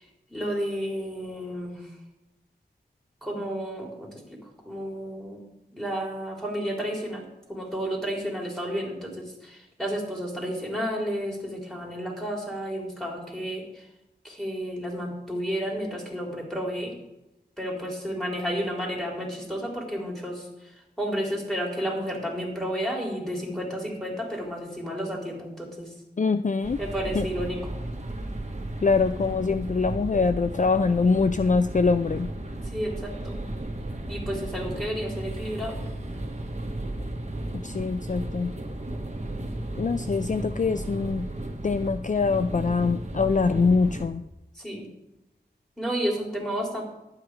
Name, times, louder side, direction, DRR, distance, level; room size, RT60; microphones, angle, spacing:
voice 1, 0.3-1.9 3.2-4.4 4.6-5.4 5.7-7.2 7.5-13.8 14.2-16.9 17.6-20.5 21.0-25.9 26.8-27.8 32.6-33.4 34.1-35.8 44.6-44.9 45.8-46.8, equal, 5° left, -2 dB, 4.1 m, -31 dB
voice 2, 26.2-26.8 27.2-27.3 28.8-32.3 37.5-38.5 39.8-41.3 41.6-44.2, left 4 dB, 45° left, 10 dB, 0.4 m, -24 dB
sound 1, 26.6-44.1, right 1 dB, 40° right, 1.6 m, -34 dB
11.0 x 8.9 x 5.0 m, 0.94 s
wide cardioid pair, 50°, 18 cm